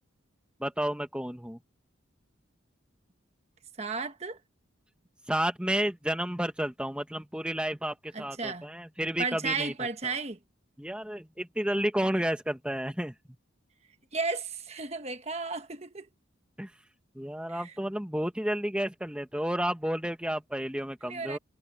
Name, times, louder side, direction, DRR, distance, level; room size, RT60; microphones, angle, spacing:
voice 1, 0.6-1.6 5.3-9.7 10.0-10.1 10.8-13.1 16.6-16.7 17.1-21.4, right 1 dB, 5° right, 1.2 m, -31 dB
voice 2, 3.8-4.4 8.1-8.7 9.2-10.4 14.1-16.1 17.5-17.7 21.0-21.4, right 4 dB, 30° right, 1.2 m, -34 dB
head